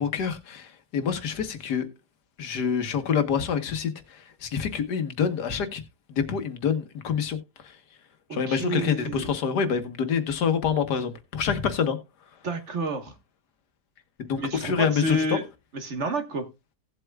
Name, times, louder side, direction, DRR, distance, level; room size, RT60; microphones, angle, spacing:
voice 1, 0.0-1.9 2.4-3.9 4.4-5.8 6.1-7.4 8.3-12.0 14.2-15.4, left 7 dB, 85° left, 1.7 m, -26 dB
voice 2, 8.3-9.3 12.4-13.1 14.4-15.4 15.7-16.5, right 2 dB, 45° right, 1.5 m, -30 dB
17.0 x 7.9 x 2.3 m
omnidirectional pair, 1.7 m